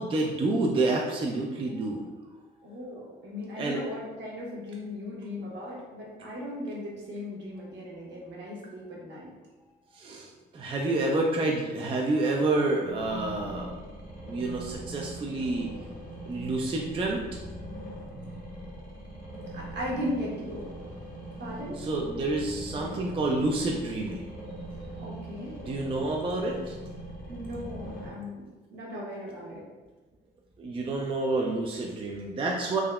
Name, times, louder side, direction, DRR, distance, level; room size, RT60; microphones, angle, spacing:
voice 1, 0.0-2.0 3.6-3.8 9.9-10.3 10.5-13.8 14.3-15.7 16.3-17.2 21.8-24.3 25.6-26.8 30.6-32.8, right 2 dB, 25° right, -1 dB, 0.3 m, -28 dB
voice 2, 2.6-9.3 19.5-20.7 21.4-21.8 25.0-25.6 27.3-28.4 28.7-29.6, left 1 dB, 65° right, -4 dB, 1.0 m, -37 dB
sound 1, 12.9-28.1, right 1 dB, 45° left, 0.9 m, -41 dB
3.5 x 2.0 x 2.3 m, 1.2 s
cardioid pair, 90°, 20 cm